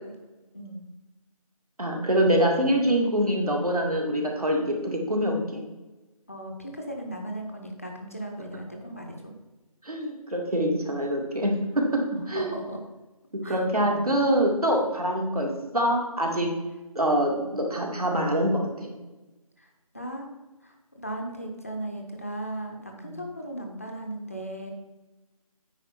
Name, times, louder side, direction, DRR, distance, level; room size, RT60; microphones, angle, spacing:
voice 1, 0.5-0.8 6.3-9.3 12.1-12.8 13.4-14.1 19.6-20.3 20.6-24.7, right 1 dB, 25° left, 2 dB, 0.6 m, -37 dB
voice 2, 1.8-5.6 9.8-11.8 12.3-12.5 13.3-16.5 17.0-18.9 23.0-23.1, equal, 75° right, 0 dB, 2.1 m, -25 dB
8.9 x 4.6 x 4.3 m, 1.1 s
figure-of-eight pair, 165°, 19 cm